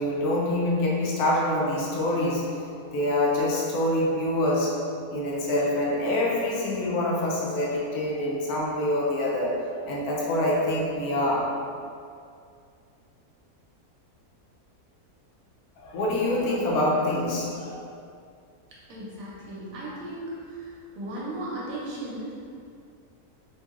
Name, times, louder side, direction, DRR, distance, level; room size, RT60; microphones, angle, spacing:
voice 1, 0.0-4.8 5.1-11.5 15.8-17.7, left 1 dB, 75° left, -4 dB, 1.0 m, -26 dB
voice 2, 18.7-22.4, right 1 dB, 70° right, -6 dB, 1.0 m, -36 dB
2.9 x 2.7 x 2.4 m, 2.3 s
omnidirectional pair, 1.6 m